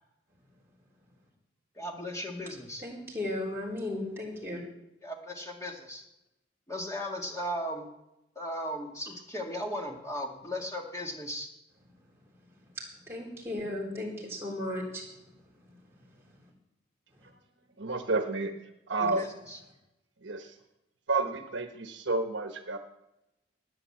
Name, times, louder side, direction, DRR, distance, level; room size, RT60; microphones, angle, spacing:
voice 1, 1.8-2.9 5.0-6.0 6.7-7.9 8.4-11.5 19.0-19.6, equal, 15° left, 1 dB, 1.9 m, -37 dB
voice 2, 2.8-4.6 13.1-15.0, left 1 dB, 10° right, -4 dB, 3.9 m, -35 dB
voice 3, 17.8-18.5 18.9-19.3 20.2-20.5 21.1-22.8, right 3 dB, 75° right, 5 dB, 1.2 m, -30 dB
12.0 x 9.7 x 7.8 m, 0.91 s
head